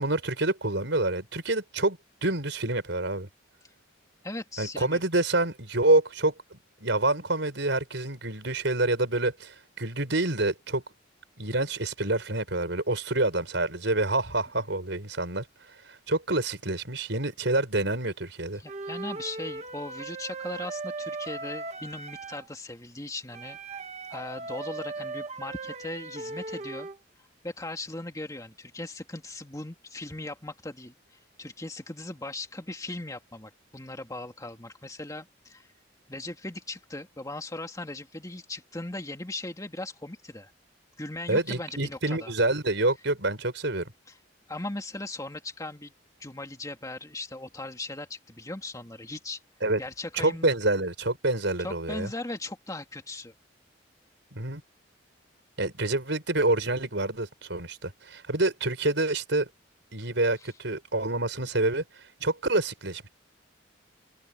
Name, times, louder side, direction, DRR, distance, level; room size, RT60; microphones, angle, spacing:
voice 1, 0.0-3.3 4.6-10.8 11.4-15.4 16.1-18.6 41.3-43.9 49.6-49.8 50.1-52.1 54.3-54.6 55.6-59.5 59.9-61.8 62.2-63.1, right 2 dB, 70° right, 5.3 m, -27 dB
voice 2, 4.2-5.0 18.6-23.8 24.1-26.9 27.4-35.7 36.1-40.5 41.0-42.3 44.1-44.2 44.5-45.9 46.2-49.4 49.8-50.5 51.6-53.3 60.4-60.5, left 2 dB, 20° left, 2.3 m, -38 dB
Wind instrument woodwind instrument, 18.7-22.5 23.3-27.0, right 3 dB, 35° right, 1.6 m, -38 dB
head